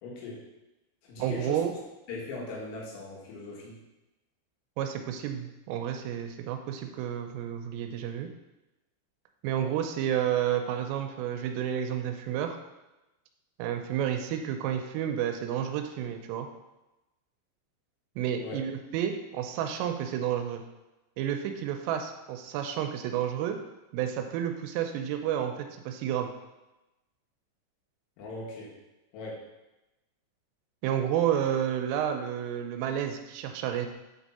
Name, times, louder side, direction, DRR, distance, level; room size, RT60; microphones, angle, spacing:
voice 1, 0.0-0.4 1.0-1.6 2.1-3.8 18.4-18.6 28.2-28.7 29.1-29.4, left 2 dB, 85° left, -4 dB, 4.1 m, -39 dB
voice 2, 1.2-1.7 4.8-8.3 9.4-12.6 13.6-16.5 18.2-20.6 21.2-23.6 23.9-26.3 30.8-33.9, right 9 dB, 85° right, 5 dB, 3.1 m, -30 dB
7.9 x 3.5 x 4.2 m, 1.0 s
omnidirectional pair, 5.9 m